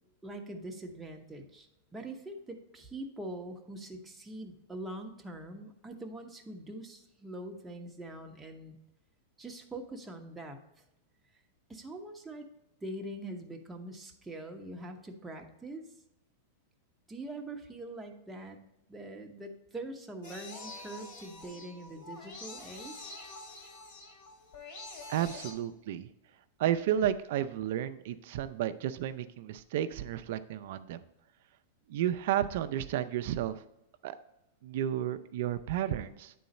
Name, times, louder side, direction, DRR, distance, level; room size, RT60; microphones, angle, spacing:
voice 1, 0.2-8.8 9.4-10.6 11.7-12.5 12.8-15.8 17.1-18.6 18.9-23.2, right 1 dB, 10° right, 2 dB, 0.9 m, -43 dB
sound 1, 20.2-25.5, left 3 dB, 55° left, 2.6 m, -46 dB
voice 2, 25.1-26.1 26.6-31.0 31.9-33.6 34.0-34.2 34.6-36.3, right 11 dB, 60° right, 11 dB, 0.4 m, -32 dB
9.3 x 3.9 x 4.2 m, 0.88 s
hypercardioid pair, 140°, 0 cm